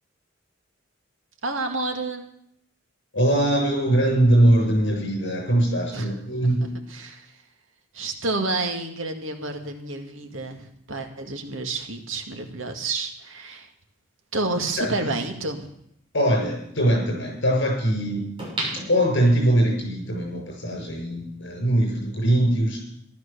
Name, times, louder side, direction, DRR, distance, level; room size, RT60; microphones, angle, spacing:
voice 1, 1.4-2.3 5.9-6.1 6.4-7.3 7.9-13.7 14.3-15.7, right 2 dB, 75° right, 5 dB, 2.2 m, -30 dB
voice 2, 3.1-6.7 14.8-14.9 16.1-18.3 18.9-22.8, right 1 dB, 65° left, 2 dB, 6.7 m, -21 dB
sound 1, 18.4-19.7 20.2-20.3, right 1 dB, 25° right, 6.4 m, -32 dB
14.5 x 12.5 x 7.0 m, 0.72 s
head